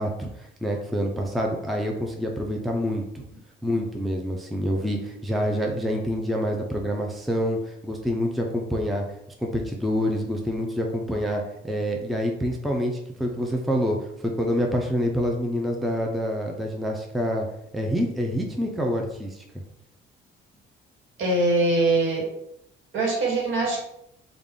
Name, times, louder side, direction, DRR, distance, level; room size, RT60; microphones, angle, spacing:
voice 1, 0.0-3.2 3.6-9.0 9.4-14.0 14.2-17.5 17.7-19.4, equal, ahead, 1 dB, 0.4 m, -27 dB
voice 2, 21.2-22.3 22.9-23.8, right 2 dB, 70° right, -1 dB, 1.3 m, -22 dB
3.4 x 2.4 x 3.6 m, 0.77 s
cardioid pair, 110°, 21 cm